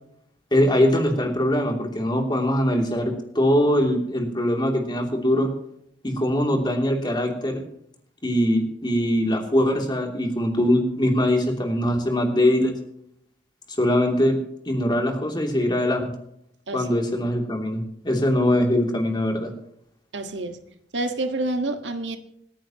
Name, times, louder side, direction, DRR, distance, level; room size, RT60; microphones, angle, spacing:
voice 1, 0.5-5.5 6.0-7.6 8.2-12.7 13.8-14.4 14.7-16.1 16.7-19.5, left 1 dB, 25° left, 2 dB, 2.9 m, -22 dB
voice 2, 20.1-20.6 20.9-22.2, right 2 dB, 85° right, 6 dB, 1.6 m, -28 dB
26.5 x 10.0 x 3.0 m, 0.75 s
head